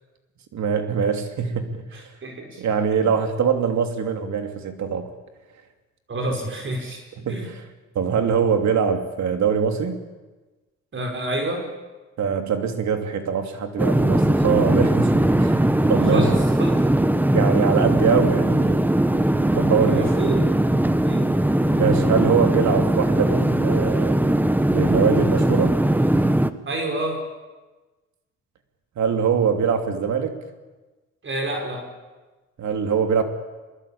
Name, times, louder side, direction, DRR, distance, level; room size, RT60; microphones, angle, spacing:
voice 1, 0.5-2.1 2.6-5.1 7.2-7.6 7.9-10.0 12.2-15.6 15.9-16.3 17.3-18.9 19.5-20.1 21.8-24.2 24.7-25.8 29.0-30.3 32.6-33.2, right 6 dB, 65° right, 6 dB, 3.0 m, -23 dB
voice 2, 1.9-2.6 3.0-3.1 6.1-7.0 7.3-7.5 10.9-11.7 16.0-16.8 19.8-20.4 20.8-21.3 26.7-27.3 31.2-31.9, right 1 dB, 40° right, 3 dB, 5.4 m, -29 dB
sound 1, 13.8-26.5, right 1 dB, 5° right, 1.2 m, -20 dB
23.0 x 21.5 x 8.7 m, 1.2 s
cardioid pair, 90°, 30 cm